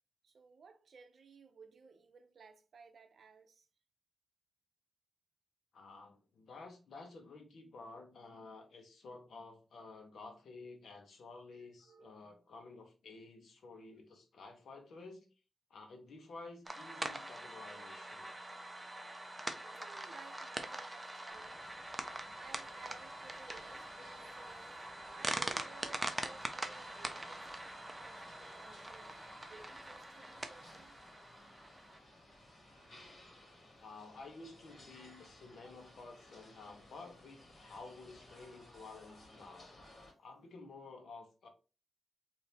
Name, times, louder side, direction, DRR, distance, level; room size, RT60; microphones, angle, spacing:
voice 1, 0.2-3.7 11.5-12.3 17.7-18.6 19.6-21.8 22.4-23.9 24.2-24.8 25.1-29.2 29.5-31.0, right 5 dB, 60° right, 0.6 m, -58 dB
voice 2, 5.7-15.3 15.7-18.3 33.8-39.8 40.2-41.5, left 3 dB, 70° left, 1.0 m, -52 dB
sound 1, 16.7-32.0, right 1 dB, 10° right, 0.5 m, -43 dB
sound 2, 21.3-40.1, left 1 dB, 40° left, 2.1 m, -58 dB
4.2 x 2.7 x 3.4 m
wide cardioid pair, 140°, 0 cm